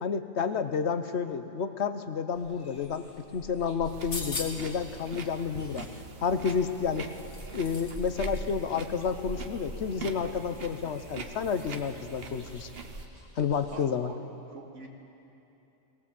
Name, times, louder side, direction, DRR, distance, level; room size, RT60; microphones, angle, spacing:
voice 1, 0.0-3.0 3.3-5.9 6.2-7.1 7.5-12.7 13.4-14.1, left 6 dB, 65° left, 9 dB, 1.1 m, -30 dB
sound 1, 2.4-13.8, equal, 20° left, 2.2 m, -46 dB
sound 2, 3.9-4.8 6.3-8.0 8.3-8.4, left 3 dB, 50° left, 1.9 m, -39 dB
sound 3, 3.9-13.1, right 5 dB, 55° right, 1.2 m, -44 dB
voice 2, 13.7-14.9, right 3 dB, 80° right, 1 dB, 2.4 m, -45 dB
20.0 x 18.0 x 7.6 m, 2.9 s
omnidirectional pair, 1.2 m